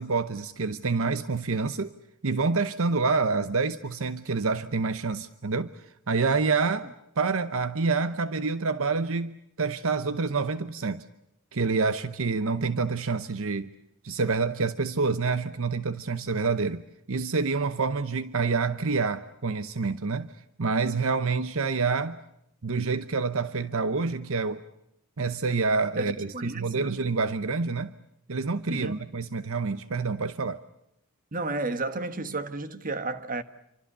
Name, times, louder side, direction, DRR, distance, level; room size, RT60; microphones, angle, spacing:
voice 1, 0.0-1.9 2.2-5.7 6.1-6.9 7.2-11.0 11.5-13.7 14.0-16.8 17.1-20.3 20.6-22.2 22.6-24.6 25.2-27.9 28.3-30.6, right 4 dB, 65° right, 0.9 m, -27 dB
voice 2, 25.9-27.0 28.7-29.0 31.3-33.4, right 2 dB, 40° right, 1.4 m, -32 dB
28.0 x 25.0 x 6.8 m
head